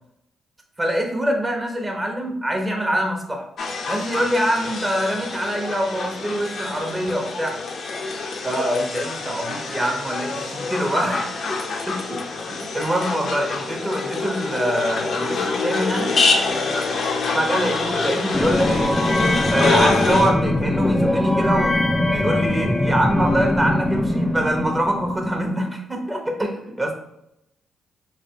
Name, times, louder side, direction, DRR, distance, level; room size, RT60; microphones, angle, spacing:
voice 1, 0.8-3.5 3.9-7.6 8.4-11.2 11.9-12.0 12.7-16.2 17.3-18.9 19.5-26.9, equal, 20° right, 2 dB, 0.9 m, -24 dB
sound 1, 3.6-20.3, left 4 dB, 60° left, 0.6 m, -26 dB
sound 2, 18.3-25.5, left 1 dB, 10° left, 0.4 m, -21 dB
3.2 x 2.8 x 2.8 m, 0.81 s
supercardioid pair, 65°, 0 cm